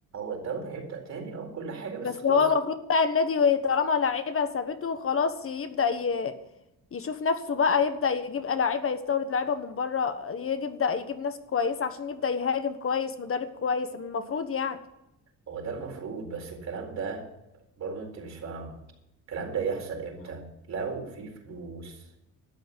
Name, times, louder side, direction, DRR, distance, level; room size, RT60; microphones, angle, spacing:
voice 1, 0.1-2.4 15.5-17.2 17.8-18.7 19.3-22.0, right 5 dB, 60° right, 2 dB, 4.2 m, -35 dB
voice 2, 2.0-6.3 6.9-14.8, left 5 dB, 45° left, 9 dB, 1.3 m, -27 dB
12.5 x 7.8 x 9.9 m, 0.86 s
cardioid pair, 90°, 30 cm